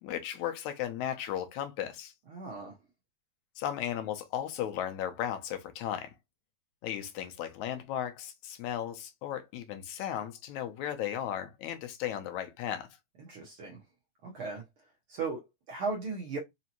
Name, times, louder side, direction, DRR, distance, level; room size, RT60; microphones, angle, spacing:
voice 1, 0.0-2.1 3.6-6.1 6.8-12.9, left 10 dB, 80° left, 2.0 m, -35 dB
voice 2, 2.3-2.7 13.3-13.8 14.2-14.6 15.1-16.4, right 4 dB, 65° right, 1.4 m, -36 dB
5.1 x 2.7 x 2.8 m
omnidirectional pair, 3.4 m